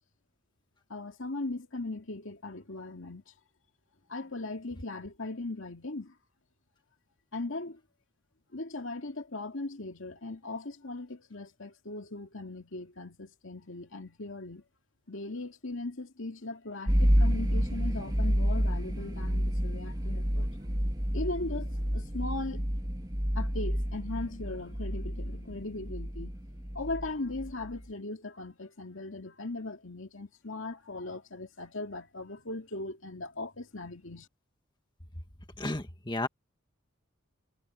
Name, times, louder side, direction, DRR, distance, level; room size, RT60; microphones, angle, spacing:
voice 1, 0.9-3.2 4.1-6.1 7.3-7.8 8.5-14.6 15.1-20.5 21.1-22.7 23.4-26.4 26.7-34.3, left 2 dB, 65° left, 2.4 m, -38 dB
sound 1, 16.9-27.8, equal, 20° right, 2.4 m, -29 dB
voice 2, 35.6-36.3, left 2 dB, 20° left, 1.8 m, -32 dB
head